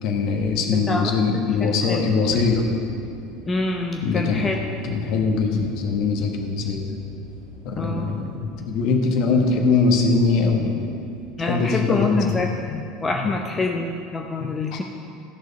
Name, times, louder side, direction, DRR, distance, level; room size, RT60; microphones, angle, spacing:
voice 1, 0.0-2.7 4.0-4.5 4.8-6.9 7.6-10.8 11.4-12.4 13.1-13.3 14.4-14.8, left 4 dB, 50° left, 3 dB, 1.3 m, -22 dB
voice 2, 0.7-1.1 1.6-2.1 3.5-4.6 7.8-8.2 11.4-14.8, left 3 dB, 20° left, 2 dB, 0.7 m, -26 dB
sound 1, 2.1-11.3, equal, 80° left, 1.5 m, -43 dB
14.5 x 6.5 x 5.2 m, 2.5 s
figure-of-eight pair, 70°, 0 cm